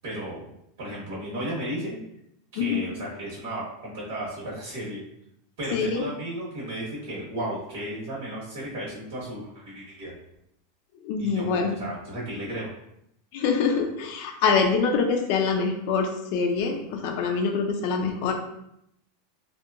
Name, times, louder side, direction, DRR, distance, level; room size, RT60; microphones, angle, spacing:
voice 1, 0.0-0.4 0.8-2.0 2.5-5.0 5.6-10.2 11.2-12.7, right 1 dB, 65° right, -6 dB, 1.0 m, -34 dB
voice 2, 5.7-6.0 11.0-11.8 13.3-18.3, left 5 dB, 50° left, 3 dB, 0.3 m, -25 dB
2.8 x 2.1 x 2.3 m, 0.77 s
supercardioid pair, 170°, 0 cm